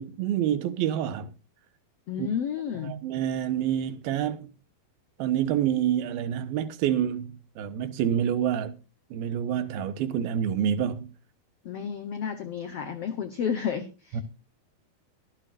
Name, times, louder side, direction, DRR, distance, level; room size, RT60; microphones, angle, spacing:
voice 1, 0.0-1.3 2.2-2.3 2.8-4.5 5.2-8.8 9.1-11.1 14.1-14.2, right 10 dB, 85° right, 2.9 m, -27 dB
voice 2, 2.1-3.0 11.6-14.2, left 7 dB, 85° left, 1.3 m, -31 dB
23.0 x 8.1 x 2.5 m
omnidirectional pair, 4.3 m